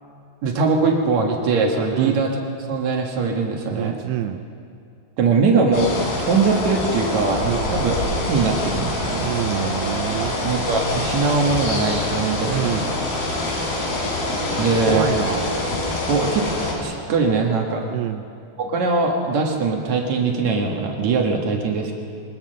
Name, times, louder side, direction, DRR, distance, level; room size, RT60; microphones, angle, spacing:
voice 1, 0.4-2.4 2.7-4.0 5.2-9.3 10.4-12.9 14.6-15.2 16.0-17.8 18.6-21.9, right 4 dB, 60° right, 1 dB, 2.1 m, -21 dB
voice 2, 3.7-4.4 7.5-7.9 9.2-10.4 12.5-12.9 14.9-15.5 17.9-18.2, right 11 dB, 80° right, 7 dB, 2.3 m, -26 dB
sound 1, 5.7-16.7, left 1 dB, 55° left, 4.9 m, -25 dB
22.5 x 20.0 x 6.6 m, 2.4 s
omnidirectional pair, 5.1 m